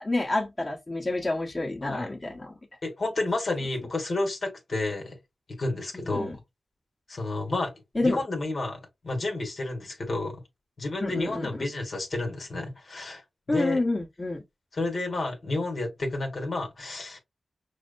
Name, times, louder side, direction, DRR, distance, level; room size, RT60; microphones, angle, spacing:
voice 1, 0.0-2.6 5.9-6.4 7.9-8.2 11.0-11.6 13.5-14.4, left 2 dB, 30° left, 1.3 m, -28 dB
voice 2, 2.8-5.2 5.5-6.3 7.1-7.7 8.0-10.4 10.8-13.8 14.7-17.2, left 2 dB, 65° left, 1.4 m, -31 dB
6.0 x 2.1 x 2.5 m
cardioid pair, 55°, 0 cm